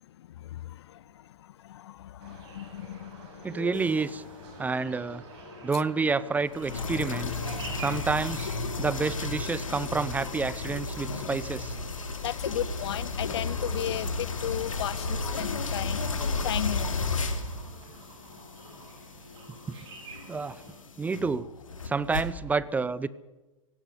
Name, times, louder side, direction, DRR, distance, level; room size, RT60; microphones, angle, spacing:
voice 1, 0.2-3.7 12.2-17.3, left 12 dB, 55° left, 0.6 m, -36 dB
sound 1, 2.2-20.8, right 1 dB, 50° right, 6.9 m, -47 dB
voice 2, 3.4-4.2 4.6-5.2 5.6-7.3 7.8-8.5 8.8-11.7 19.7-19.8 20.3-20.6 21.0-21.5 21.8-23.1, right 4 dB, 10° right, 0.6 m, -29 dB
sound 2, 3.7-4.3 6.5-22.2, left 3 dB, 75° left, 2.8 m, -33 dB
17.0 x 16.5 x 9.5 m
figure-of-eight pair, 110°, 17 cm